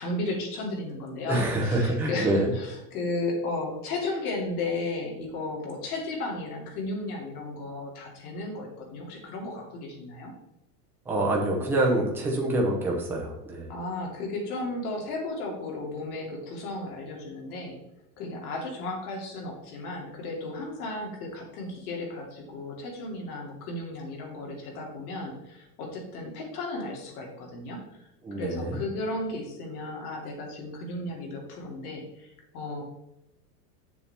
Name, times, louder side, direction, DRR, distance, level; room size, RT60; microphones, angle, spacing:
voice 1, 0.0-10.3 13.7-17.8 18.2-28.0 28.3-32.8, left 2 dB, 65° left, 0 dB, 2.7 m, -34 dB
voice 2, 1.3-2.5 11.1-13.7 28.2-28.8, right 1 dB, 5° right, -2 dB, 0.6 m, -26 dB
7.4 x 7.0 x 3.4 m, 0.89 s
supercardioid pair, 180°, 48 cm